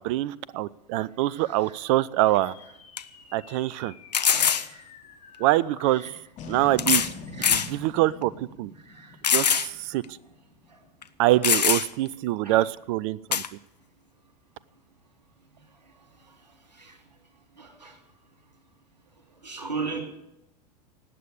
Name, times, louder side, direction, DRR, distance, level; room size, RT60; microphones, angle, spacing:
voice 1, 0.0-2.5 3.3-3.9 5.4-6.1 6.5-7.1 7.4-8.7 9.3-10.0 11.2-13.4, right 16 dB, 50° right, 21 dB, 0.6 m, -24 dB
sound 1, 2.3-10.9, left 3 dB, 35° left, 2.6 m, -45 dB
sound 2, 2.4-2.5 3.0-3.1 4.1-4.7 5.8-5.9 6.8-7.1 7.4-7.7 8.2-8.3 9.2-9.7 10.0-10.1 11.0-11.1 11.4-12.1 13.3-13.5, left 8 dB, 85° left, 0.7 m, -23 dB
voice 2, 17.6-17.9 19.4-20.0, right 4 dB, 85° right, 4 dB, 3.0 m, -34 dB
18.5 x 8.4 x 7.1 m, 0.87 s
figure-of-eight pair, 85°, 21 cm